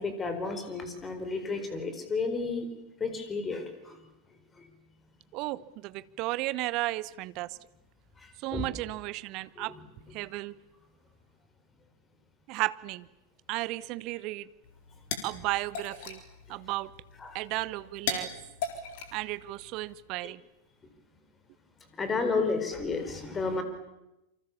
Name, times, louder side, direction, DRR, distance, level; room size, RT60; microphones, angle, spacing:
voice 1, 0.0-2.7 3.0-4.1 4.5-4.7 8.2-8.7 9.6-10.2 17.2-17.4 20.2-20.3 21.9-23.6, left 4 dB, 20° left, 8 dB, 4.4 m, -32 dB
voice 2, 5.3-7.6 8.4-9.7 10.1-10.5 12.5-13.1 13.5-14.5 15.2-16.2 16.5-16.9 17.3-18.3 19.1-20.4, right 19 dB, 40° right, 18 dB, 0.9 m, -34 dB
sound 1, 14.6-19.9, left 6 dB, 50° left, 4.1 m, -39 dB
28.0 x 25.0 x 7.2 m, 0.95 s
figure-of-eight pair, 90°, 0 cm